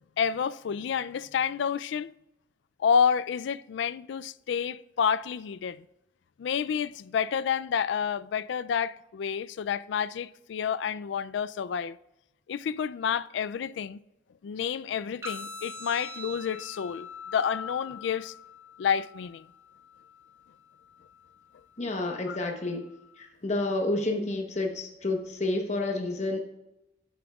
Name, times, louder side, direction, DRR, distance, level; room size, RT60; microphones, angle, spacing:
voice 1, 0.2-2.1 2.8-5.9 6.4-12.0 12.5-14.0 14.4-18.3 18.8-19.5 22.3-22.4, left 7 dB, 65° left, 0.3 m, -29 dB
sound 1, 15.2-23.2, left 4 dB, 15° right, 1.3 m, -44 dB
voice 2, 21.8-22.8 23.2-26.4, left 2 dB, 35° left, 1.0 m, -29 dB
11.0 x 8.5 x 2.4 m
head